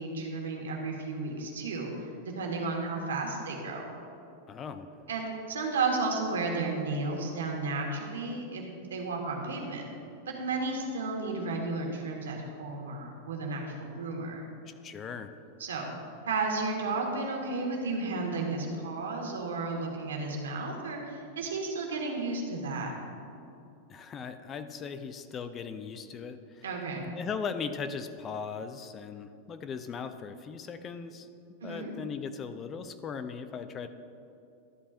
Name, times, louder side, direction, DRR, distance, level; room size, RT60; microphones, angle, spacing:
voice 1, 0.0-1.9 2.2-3.9 5.1-8.6 8.9-9.9 10.3-14.4 15.6-15.9 16.3-22.9 26.6-27.1 31.6-31.9, right 3 dB, 85° right, 1 dB, 1.5 m, -33 dB
voice 2, 4.5-4.9 14.7-15.3 23.9-26.7 27.1-31.3 31.6-33.9, left 6 dB, 30° left, 10 dB, 0.5 m, -38 dB
12.5 x 8.4 x 2.5 m, 2.6 s
hypercardioid pair, 110°, 0 cm